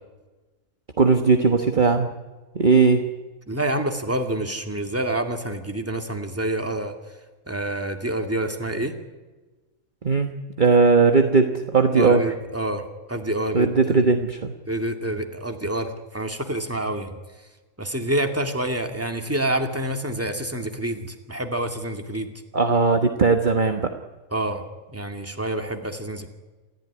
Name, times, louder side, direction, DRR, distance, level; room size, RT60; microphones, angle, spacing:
voice 1, 1.0-2.1 2.5-3.1 10.0-10.3 10.6-12.3 13.5-14.5 22.5-23.9, right 4 dB, 35° right, 6 dB, 1.4 m, -18 dB
voice 2, 3.5-6.9 7.5-8.9 11.9-13.7 14.7-17.2 17.8-22.3 24.3-24.6 24.9-26.3, right 1 dB, 10° right, 5 dB, 2.4 m, -27 dB
28.0 x 15.5 x 9.8 m, 1.2 s
omnidirectional pair, 1.5 m